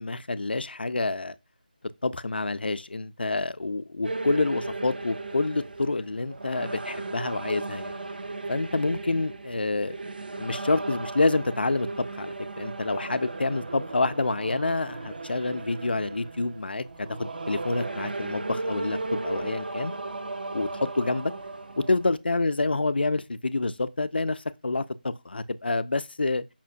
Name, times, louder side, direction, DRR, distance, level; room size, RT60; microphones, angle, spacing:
voice 1, 0.0-1.4 2.0-7.9 8.5-9.9 10.4-19.9 20.5-21.3 21.8-26.4, left 3 dB, 85° left, 0.4 m, -28 dB
sound 1, 4.0-22.2, right 2 dB, 70° right, 0.5 m, -36 dB
5.5 x 2.2 x 2.5 m
figure-of-eight pair, 165°, 5 cm